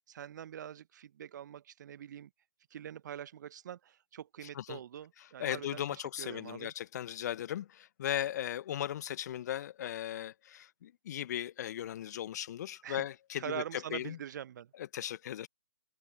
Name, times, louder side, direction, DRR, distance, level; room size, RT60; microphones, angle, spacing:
voice 1, 0.1-2.3 2.7-6.7 12.8-13.0 13.4-14.7, right 10 dB, 45° right, 1.0 m, -44 dB
voice 2, 5.4-14.2 14.8-15.5, left 11 dB, 40° left, 0.9 m, -37 dB
open air
figure-of-eight pair, 135°, 14 cm